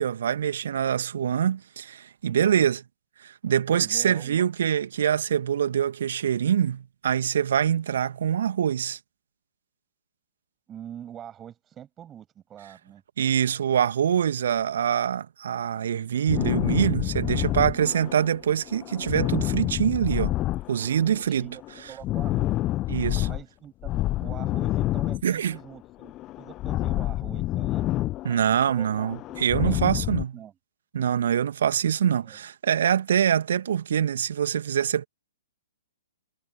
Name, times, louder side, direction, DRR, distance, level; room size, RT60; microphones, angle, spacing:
voice 1, 0.0-2.8 3.2-9.0 13.2-20.3 20.7-21.5 22.9-23.3 25.2-25.6 28.2-30.3 30.9-35.1, right 9 dB, 55° right, 2.1 m, -24 dB
voice 2, 2.3-2.7 3.7-4.5 10.7-13.0 17.7-17.9 20.8-21.6 21.9-22.7 23.3-23.9 24.2-27.9 28.7-30.5 32.2-32.4, right 10 dB, 20° right, 7.7 m, -44 dB
sound 1, 16.3-18.4 18.7-21.2 21.5-23.4 23.8-25.8 26.0-28.6 28.9-30.2, left 16 dB, 25° left, 0.8 m, -28 dB
figure-of-eight pair, 120°, 0 cm